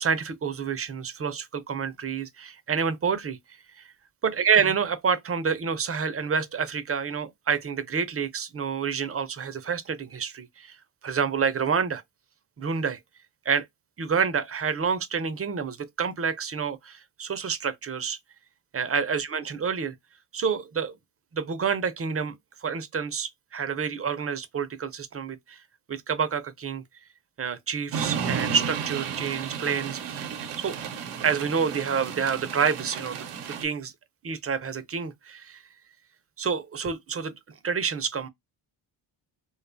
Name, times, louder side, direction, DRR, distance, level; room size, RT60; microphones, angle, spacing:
voice 1, 0.0-3.4 3.8-3.9 4.2-10.8 11.0-12.0 12.6-13.0 13.5-13.7 14.0-18.2 18.7-19.9 20.3-21.0 21.3-22.4 22.6-25.6 25.9-26.8 27.4-30.2 30.6-30.8 31.2-33.2 33.6-33.9 34.2-35.6 36.4-37.3 37.6-38.3, right 6 dB, 30° right, 0.5 m, -28 dB
sound 1, 27.9-33.6, right 7 dB, 90° right, 0.7 m, -33 dB
2.6 x 2.3 x 2.4 m
cardioid pair, 70°, 50 cm